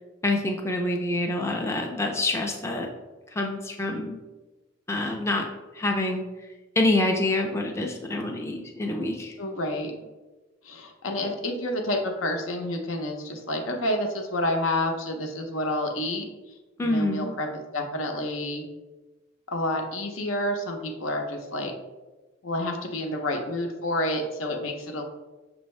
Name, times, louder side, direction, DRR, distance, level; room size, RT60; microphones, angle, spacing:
voice 1, 0.2-2.9 3.4-4.2 4.9-5.5 5.8-6.2 6.8-9.3 16.8-17.3, left 2 dB, 15° left, 1 dB, 0.3 m, -26 dB
voice 2, 9.4-9.9 10.6-16.3 16.8-17.5 17.7-18.7 19.5-21.7 22.4-25.0, left 1 dB, 85° left, 3 dB, 0.7 m, -29 dB
6.1 x 2.6 x 3.1 m, 1.2 s
head